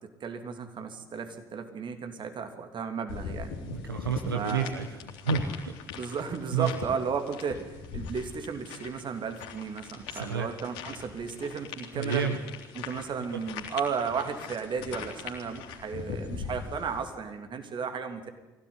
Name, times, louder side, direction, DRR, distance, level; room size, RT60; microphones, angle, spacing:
voice 1, 0.0-3.5 4.3-4.7 5.9-12.2 12.7-18.3, right 6 dB, 40° right, 7 dB, 3.1 m, -34 dB
sound 1, 3.1-17.0, left 6 dB, 65° left, 3.3 m, -41 dB
voice 2, 3.6-5.0 5.2-5.8 6.5-6.8 10.1-10.5 11.9-12.4 13.3-13.4, right 6 dB, 80° right, 5 dB, 1.4 m, -30 dB
23.0 x 17.0 x 10.0 m, 1.1 s
figure-of-eight pair, 50°, 12 cm